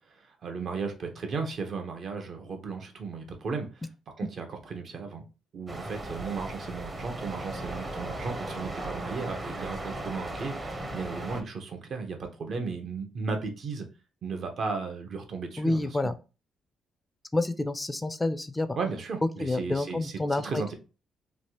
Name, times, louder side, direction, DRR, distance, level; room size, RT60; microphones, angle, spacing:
voice 1, 0.1-3.8 4.2-5.2 5.5-13.9 14.2-16.1 18.8-20.7, right 4 dB, 55° right, 4 dB, 0.8 m, -35 dB
sound 1, 5.7-11.4, right 1 dB, 25° right, 0.7 m, -37 dB
voice 2, 15.6-16.1 17.3-18.8 19.4-20.7, left 2 dB, 15° left, 11 dB, 0.4 m, -28 dB
3.3 x 2.4 x 2.9 m, 0.32 s
cardioid pair, 90°, 0 cm